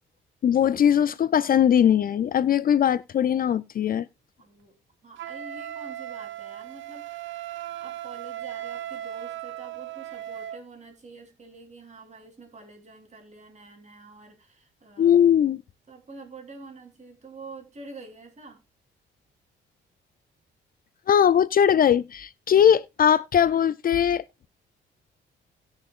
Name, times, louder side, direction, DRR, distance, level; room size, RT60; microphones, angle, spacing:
voice 1, 0.4-4.1 15.0-15.6 21.1-24.2, left 9 dB, 45° left, 0.4 m, -20 dB
voice 2, 4.4-4.8 5.0-15.2 15.9-18.6, right 3 dB, 35° right, 3.5 m, -46 dB
Wind instrument woodwind instrument, 5.2-10.6, right 12 dB, 70° right, 0.7 m, -37 dB
19.0 x 6.4 x 2.4 m
cardioid pair, 90°, 20 cm